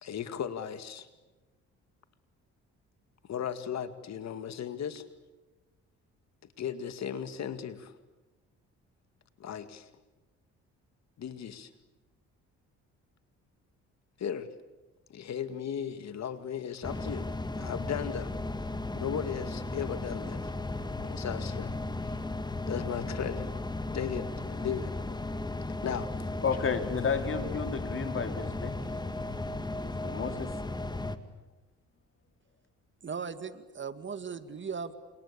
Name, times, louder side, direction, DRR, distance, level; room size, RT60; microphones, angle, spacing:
voice 1, 0.0-1.1 3.2-5.0 6.6-7.9 9.4-9.9 11.2-11.7 14.2-14.5 15.1-17.3 17.5-18.3 19.0-20.5 21.0-21.7 22.1-22.2 22.7-23.5 23.9-24.9 25.8-26.1, left 8 dB, 60° left, 2.2 m, -36 dB
sound 1, 16.8-31.2, left 2 dB, 15° left, 2.0 m, -35 dB
voice 2, 26.4-28.8 29.8-30.6, left 5 dB, 45° left, 3.8 m, -32 dB
voice 3, 33.0-34.9, right 6 dB, 40° right, 2.2 m, -38 dB
30.0 x 27.5 x 7.0 m
cardioid pair, 90°, 30 cm